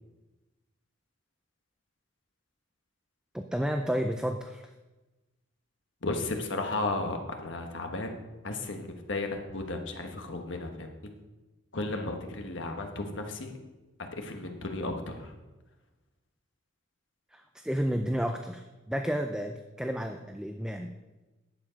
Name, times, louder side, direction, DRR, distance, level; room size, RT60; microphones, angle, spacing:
voice 1, 3.3-4.6 17.3-20.9, equal, 5° right, 5 dB, 0.4 m, -31 dB
voice 2, 6.0-8.1 8.4-11.1 11.7-13.6 14.0-15.3, left 2 dB, 65° left, 4 dB, 1.3 m, -34 dB
10.5 x 7.1 x 5.2 m, 1.1 s
head